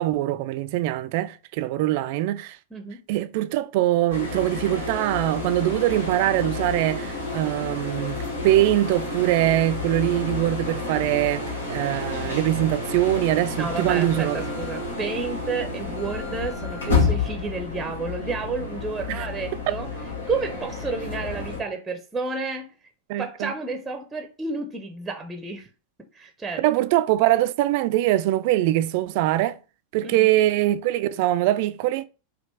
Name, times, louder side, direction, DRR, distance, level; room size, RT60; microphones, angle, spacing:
voice 1, 0.0-2.6 3.1-14.4 19.1-19.3 23.1-23.5 26.6-29.6 29.9-32.0, right 14 dB, 50° right, 0.4 m, -23 dB
sound 1, 4.1-21.6, left 3 dB, 70° left, 1.4 m, -30 dB
voice 2, 13.6-19.9 20.3-22.7 23.2-25.7 26.1-26.6 30.0-30.3, right 4 dB, 10° right, 0.7 m, -31 dB
5.1 x 2.9 x 3.4 m
figure-of-eight pair, 90°, 0 cm